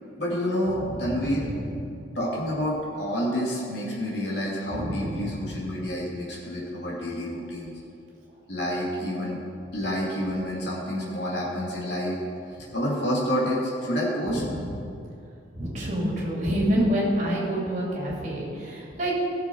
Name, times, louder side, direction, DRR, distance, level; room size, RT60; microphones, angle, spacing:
voice 1, 0.2-1.5 2.1-7.7 8.5-9.4 9.7-12.2 12.7-14.4, equal, 60° left, -5 dB, 2.8 m, -28 dB
voice 2, 0.8-1.7 4.7-5.7 14.3-14.9 15.6-19.1, equal, 40° right, -4 dB, 2.7 m, -28 dB
16.0 x 6.8 x 4.7 m, 2.5 s
head